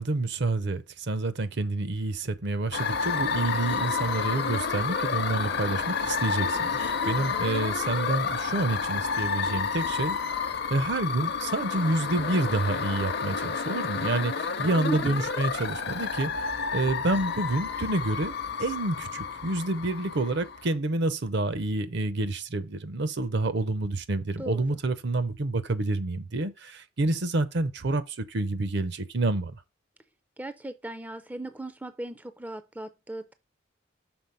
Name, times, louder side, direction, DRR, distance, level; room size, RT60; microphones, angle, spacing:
voice 1, 0.0-10.2 10.7-29.6, right 2 dB, 60° right, 0.7 m, -28 dB
sound 1, 2.7-20.7, left 5 dB, 55° left, 0.8 m, -30 dB
voice 2, 14.8-15.2 24.4-24.7 30.4-33.3, right 1 dB, 10° right, 0.4 m, -37 dB
6.2 x 4.0 x 5.3 m
head